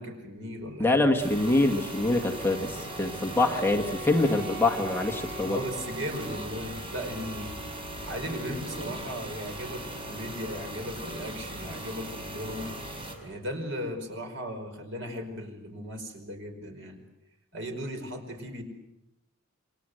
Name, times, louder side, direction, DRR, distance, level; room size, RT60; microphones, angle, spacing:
voice 1, 0.0-1.1 5.5-7.5 8.0-12.7 13.2-17.0 17.5-18.6, equal, 65° right, 5 dB, 5.0 m, -37 dB
voice 2, 0.8-5.6, left 2 dB, 10° left, 3 dB, 2.0 m, -25 dB
sound 1, 1.2-13.1, right 1 dB, 25° right, 5.0 m, -39 dB
Wind instrument woodwind instrument, 2.2-7.0, right 2 dB, 50° right, 4.7 m, -42 dB
28.5 x 23.0 x 8.0 m, 0.92 s
head